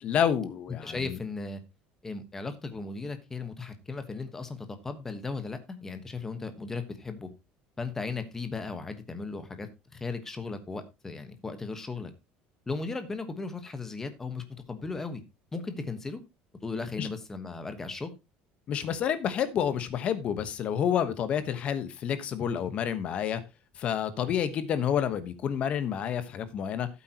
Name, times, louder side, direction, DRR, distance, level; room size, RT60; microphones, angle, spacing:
voice 1, 0.0-1.2 17.0-17.1 18.7-23.4 23.8-26.9, left 8 dB, 35° left, 1.2 m, -29 dB
voice 2, 0.8-1.6 2.0-7.3 7.8-12.1 12.7-15.2 15.5-16.2 16.6-18.1, left 4 dB, 10° left, 1.3 m, -36 dB
13.5 x 8.4 x 2.9 m
cardioid pair, 175°, 4 cm